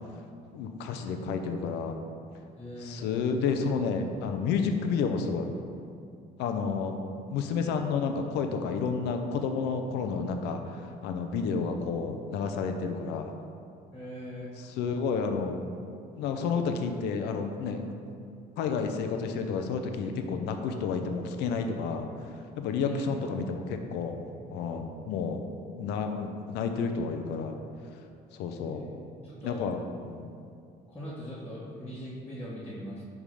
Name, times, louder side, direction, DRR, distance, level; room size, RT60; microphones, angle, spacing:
voice 1, 0.5-2.0 2.8-5.5 6.4-7.0 7.3-13.3 14.6-15.6 16.2-17.9 18.6-22.1 22.6-24.2 24.5-25.4 25.8-27.5 28.3-28.9 29.4-29.8 30.0-30.3, left 5 dB, 90° left, 6 dB, 0.7 m, -30 dB
voice 2, 2.5-3.0 13.9-14.5 22.8-23.1 28.6-28.9 29.2-29.7 30.9-33.0, equal, 10° left, -10 dB, 1.6 m, -40 dB
10.5 x 3.6 x 4.9 m, 2.4 s
cardioid pair, 110°, 17 cm